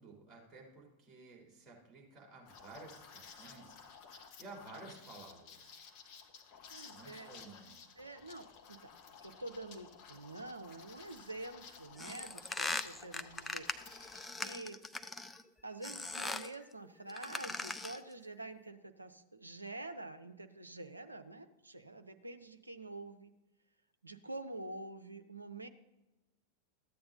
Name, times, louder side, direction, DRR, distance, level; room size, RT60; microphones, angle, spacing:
voice 1, 0.0-3.8 4.4-5.8 6.9-7.8, right 3 dB, 20° right, -3 dB, 3.9 m, -53 dB
Liquid, 2.5-14.3, left 6 dB, 40° left, 1.2 m, -55 dB
voice 2, 6.7-7.4 8.0-8.9 9.2-14.8 15.6-23.3 24.0-25.7, right 2 dB, 85° right, 8 dB, 0.6 m, -47 dB
sound 1, 12.0-15.4 15.8-16.5 17.1-18.1, left 2 dB, 10° left, 0.5 m, -40 dB
14.0 x 8.7 x 2.7 m, 1.0 s
figure-of-eight pair, 90°, 0 cm